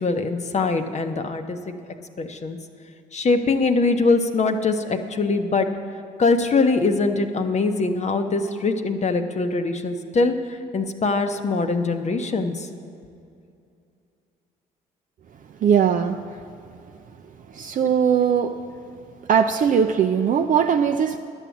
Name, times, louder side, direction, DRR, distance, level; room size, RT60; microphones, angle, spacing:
voice 1, 0.0-1.7 2.2-2.6 3.1-5.7 6.2-12.7, left 3 dB, 40° left, 7 dB, 0.9 m, -22 dB
voice 2, 15.6-16.4 17.5-18.6 19.3-21.2, right 7 dB, 45° right, 6 dB, 0.5 m, -20 dB
11.0 x 7.2 x 7.2 m, 2.5 s
hypercardioid pair, 60°, 18 cm